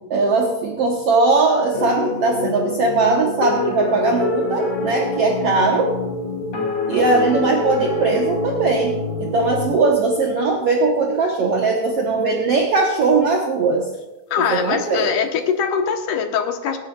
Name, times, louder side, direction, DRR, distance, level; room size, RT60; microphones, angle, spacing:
voice 1, 0.1-5.9 6.9-8.9 9.2-13.9 14.5-15.1, right 3 dB, 60° right, 0 dB, 1.9 m, -19 dB
sound 1, 1.7-11.0, left 2 dB, 45° left, 2.8 m, -26 dB
voice 2, 14.3-16.8, left 7 dB, 85° left, 5 dB, 2.7 m, -22 dB
26.0 x 9.8 x 2.4 m, 1.0 s
omnidirectional pair, 3.6 m